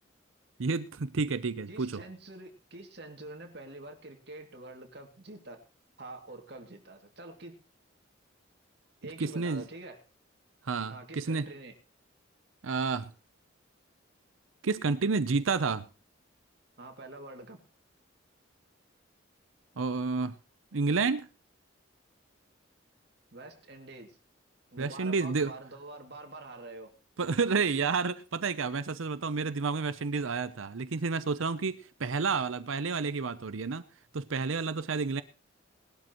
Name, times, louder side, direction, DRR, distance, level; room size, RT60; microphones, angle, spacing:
voice 1, 0.6-2.0 9.2-9.6 10.6-11.5 12.6-13.1 14.6-15.9 19.8-20.3 20.7-21.3 24.8-25.5 27.2-33.8 34.1-35.2, right 4 dB, 85° right, 0.7 m, -30 dB
voice 2, 1.7-5.6 6.0-7.6 9.0-10.0 10.9-11.7 16.8-17.6 23.3-24.2 24.7-26.9, right 2 dB, 55° right, 2.4 m, -46 dB
20.0 x 12.0 x 3.0 m
head